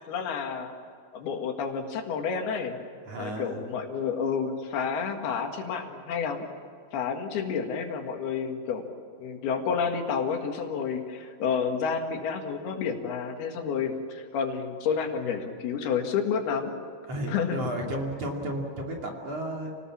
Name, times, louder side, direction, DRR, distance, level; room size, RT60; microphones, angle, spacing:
voice 1, 0.1-0.7 1.1-2.8 3.2-6.5 6.9-8.9 9.2-16.7 17.3-17.6, left 6 dB, 75° left, 4 dB, 3.8 m, -30 dB
voice 2, 3.0-3.6 17.1-19.7, right 1 dB, 45° right, 0 dB, 3.4 m, -33 dB
29.0 x 19.0 x 7.4 m, 2.2 s
omnidirectional pair, 4.5 m